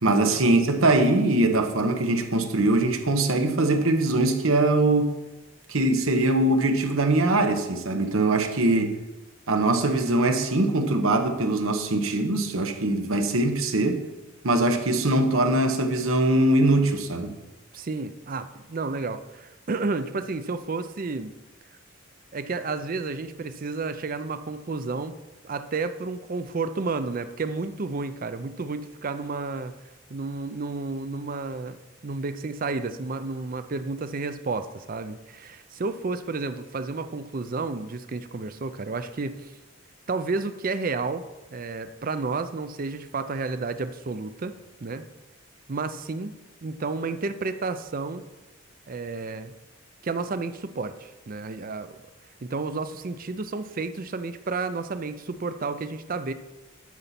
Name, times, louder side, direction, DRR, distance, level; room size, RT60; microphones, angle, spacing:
voice 1, 0.0-5.1 5.7-8.9 9.5-14.0 14.4-17.3, right 2 dB, 80° right, 1.0 m, -22 dB
voice 2, 17.7-21.3 22.3-25.1 25.4-29.7 30.1-39.5 40.1-41.2 41.5-44.5 44.8-45.0 45.7-46.3 46.6-48.2 48.9-49.5 50.0-51.9 52.4-56.3, right 3 dB, 40° right, 0.5 m, -31 dB
12.0 x 4.1 x 5.8 m
head